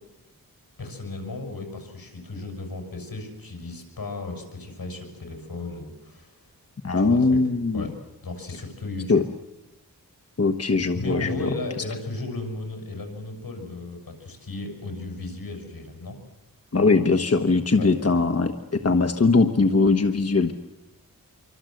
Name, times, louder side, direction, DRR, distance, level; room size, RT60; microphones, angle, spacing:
voice 1, 0.8-6.4 7.0-7.4 7.7-8.0 8.2-9.2 10.8-16.2 17.7-17.9, left 2 dB, 85° left, 4 dB, 6.9 m, -35 dB
voice 2, 6.8-7.8 9.1-9.2 10.4-11.5 16.7-20.5, left 3 dB, 45° left, 6 dB, 1.3 m, -21 dB
26.5 x 24.5 x 7.9 m, 0.98 s
wide cardioid pair, 90°, 35 cm